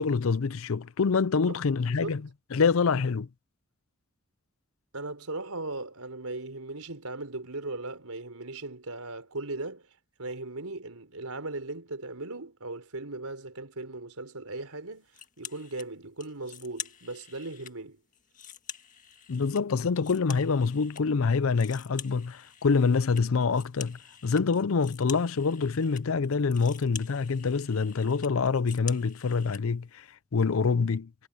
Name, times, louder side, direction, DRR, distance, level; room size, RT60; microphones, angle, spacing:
voice 1, 0.0-2.2 2.5-3.3 19.3-30.1 30.3-31.1, left 5 dB, 70° left, 0.5 m, -26 dB
voice 2, 1.9-2.2 4.9-9.9 10.2-15.1 15.4-18.0, right 2 dB, 85° right, 4.4 m, -38 dB
sound 1, 15.1-15.9 16.2-17.7 18.1-21.0 21.3-29.6, left 9 dB, 35° left, 1.7 m, -46 dB
head